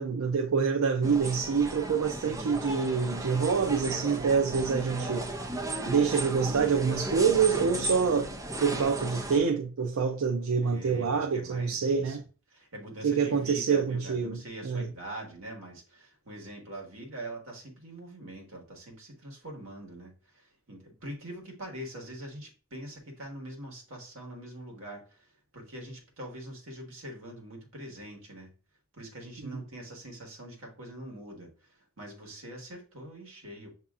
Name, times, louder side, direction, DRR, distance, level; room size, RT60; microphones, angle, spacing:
voice 1, 0.0-5.3 5.9-8.3 8.6-12.2 13.0-14.9 29.4-29.6, right 6 dB, 90° right, 0.5 m, -26 dB
sound 1, 1.0-9.4, right 1 dB, 15° right, 0.4 m, -35 dB
voice 2, 10.6-12.2 12.5-25.3 25.5-28.5 28.9-31.5 32.0-33.7, right 1 dB, 70° right, 1.5 m, -43 dB
6.8 x 2.8 x 2.4 m
head